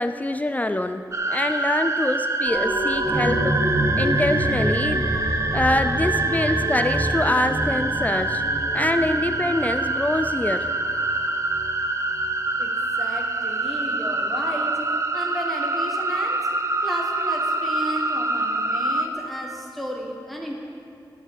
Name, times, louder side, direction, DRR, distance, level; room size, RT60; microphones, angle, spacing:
voice 1, 0.0-3.5 4.0-5.1 5.5-8.4 8.7-10.7, left 1 dB, 20° left, 8 dB, 0.4 m, -25 dB
sound 1, 1.1-19.1, right 2 dB, 35° right, 0.6 m, -25 dB
sound 2, 2.5-11.8 12.2-12.3, right 1 dB, 85° right, 3.1 m, -28 dB
voice 2, 12.6-14.8 15.1-16.5 16.8-20.5, equal, ahead, 0 dB, 1.3 m, -34 dB
11.0 x 5.8 x 8.3 m, 2.6 s
wide cardioid pair, 85°, 8 cm